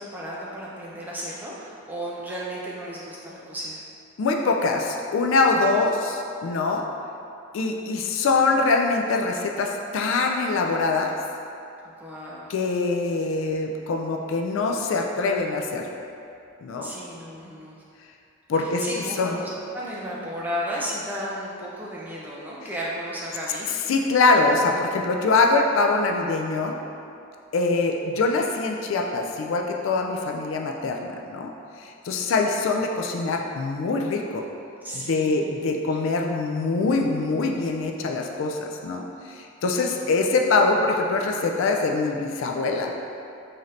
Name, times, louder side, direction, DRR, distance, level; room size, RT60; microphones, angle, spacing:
voice 1, 0.0-3.8 5.5-5.6 11.8-12.5 16.8-17.8 18.6-23.8 34.8-35.5 35.9-36.1 39.7-40.1, equal, 10° right, -6 dB, 0.4 m, -34 dB
voice 2, 4.2-6.8 7.5-11.1 12.5-15.9 16.6-16.9 18.5-18.8 19.2-19.4 23.9-26.8 27.5-31.5 31.8-34.5 34.9-42.9, left 3 dB, 70° left, 2 dB, 0.3 m, -23 dB
3.7 x 2.7 x 3.2 m, 2.5 s
head